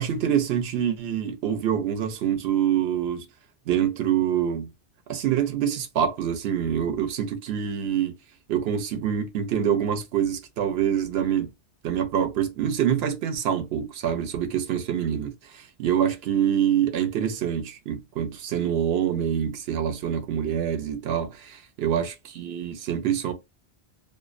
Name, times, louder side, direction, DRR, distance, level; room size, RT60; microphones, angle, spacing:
voice 1, 0.0-3.2 3.7-4.7 5.1-8.1 8.5-11.5 11.8-23.3, right 9 dB, 70° right, 0.8 m, -25 dB
2.5 x 2.0 x 2.4 m
omnidirectional pair, 1.1 m